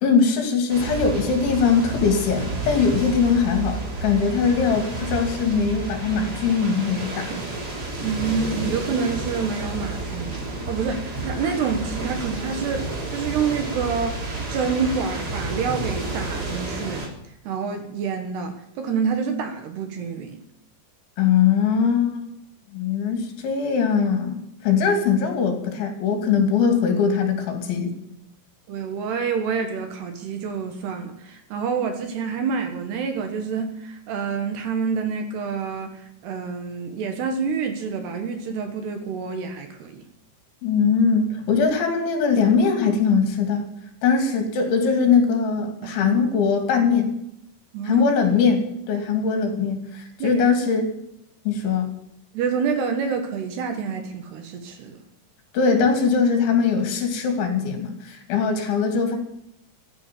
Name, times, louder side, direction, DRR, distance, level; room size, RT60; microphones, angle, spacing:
voice 1, 0.0-7.4 21.2-22.3 22.7-27.9 40.6-43.7 44.0-47.1 47.8-50.9 51.5-51.9 55.5-59.2, left 5 dB, 65° left, 5 dB, 4.9 m, -21 dB
wind heavy tropical storm trees blowing close harsh +steps, 0.7-17.1, right 2 dB, 25° right, 2.9 m, -30 dB
voice 2, 8.0-12.9 13.1-17.1 17.4-20.4 28.7-40.0 45.8-46.2 47.7-48.1 50.2-50.4 52.3-55.0, right 6 dB, 65° right, 5 dB, 3.2 m, -27 dB
15.0 x 10.5 x 8.5 m, 0.80 s
omnidirectional pair, 5.8 m